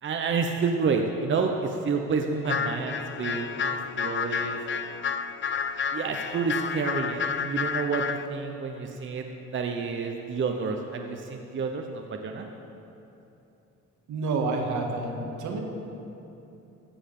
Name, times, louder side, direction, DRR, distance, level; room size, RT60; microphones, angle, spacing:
voice 1, 0.0-4.6 5.9-9.3 9.5-12.5, right 5 dB, 40° right, 3 dB, 0.8 m, -29 dB
sound 1, 2.4-8.3, left 6 dB, 40° left, 0.5 m, -30 dB
voice 2, 14.1-15.6, right 3 dB, 75° right, 1 dB, 1.7 m, -29 dB
14.0 x 7.1 x 5.5 m, 2.9 s
cardioid pair, 90°, 30 cm